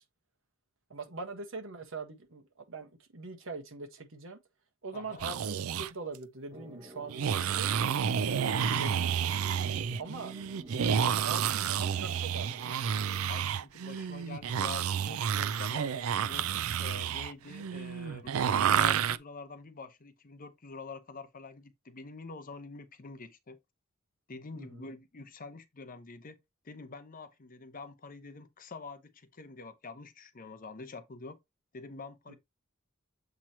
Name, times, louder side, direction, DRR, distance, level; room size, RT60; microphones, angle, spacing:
voice 1, 0.9-4.4 4.8-7.7 8.5-9.2 10.0-13.0 24.5-24.9 32.3-32.4, right 3 dB, 70° right, 1.5 m, -42 dB
voice 2, 4.9-5.2 8.2-8.6 13.2-16.5 16.8-23.6 24.3-26.4 26.6-31.4 31.7-32.4, left 4 dB, 40° left, 0.8 m, -46 dB
sound 1, 5.1-5.9 7.1-19.2, right 8 dB, 85° right, 0.4 m, -30 dB
sound 2, 6.5-13.4, right 2 dB, 30° right, 1.0 m, -51 dB
7.6 x 3.0 x 4.3 m
head